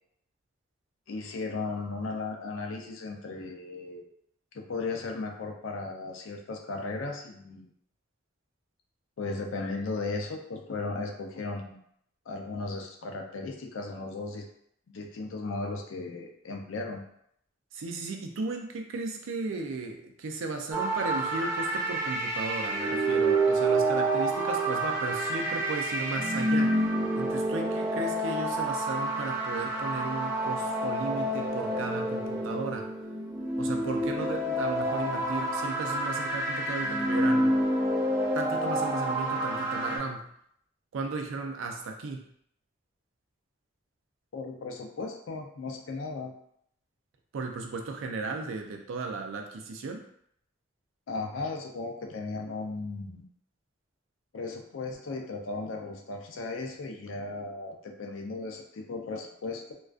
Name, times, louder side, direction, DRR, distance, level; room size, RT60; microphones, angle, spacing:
voice 1, 1.1-4.0 4.5-7.7 9.2-11.8 12.3-14.5 14.9-17.0 44.3-46.3 51.1-53.2 54.3-59.7, left 3 dB, 80° left, 2 dB, 0.4 m, -36 dB
voice 2, 17.7-26.8 27.1-32.9 33.6-37.6 38.3-40.3 40.9-42.3 47.3-50.1, right 3 dB, 80° right, 3 dB, 0.4 m, -35 dB
sound 1, 20.7-40.0, right 1 dB, 10° right, 0.3 m, -28 dB
2.4 x 2.2 x 2.4 m, 0.70 s
head